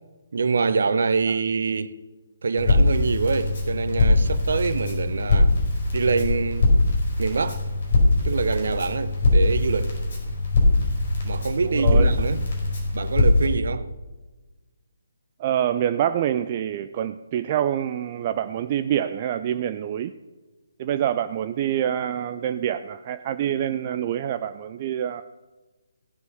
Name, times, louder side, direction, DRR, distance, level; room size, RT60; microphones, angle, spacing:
voice 1, 0.3-1.9 2.4-5.5 5.9-6.7 7.2-7.6 8.2-10.0 11.2-12.4 12.9-13.9, right 4 dB, 55° right, 0.9 m, -25 dB
Crackle, 2.6-13.5, left 2 dB, 45° left, 4.9 m, -22 dB
voice 2, 11.6-12.2 15.4-20.2 20.8-25.2, right 10 dB, 30° right, 0.4 m, -26 dB
16.0 x 7.8 x 6.9 m
figure-of-eight pair, 140°, 0 cm